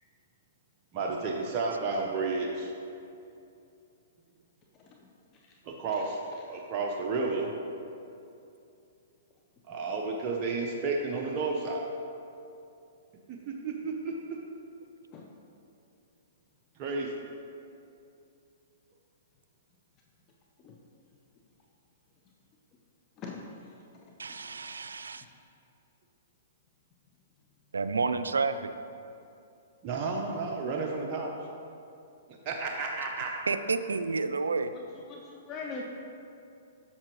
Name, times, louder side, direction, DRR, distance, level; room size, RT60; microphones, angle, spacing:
voice 1, 0.9-2.7 5.6-6.2 6.5-7.5 9.7-11.9 13.3-14.4 16.8-17.1 29.8-31.3 32.5-33.3, right 3 dB, 35° right, -1 dB, 0.7 m, -32 dB
voice 2, 24.2-25.2 27.7-28.7 33.5-34.7, right 4 dB, 90° right, 10 dB, 0.3 m, -30 dB
voice 3, 34.7-35.8, left 4 dB, 30° left, 0 dB, 0.6 m, -41 dB
7.4 x 6.8 x 3.0 m, 2.6 s
hypercardioid pair, 125°, 0 cm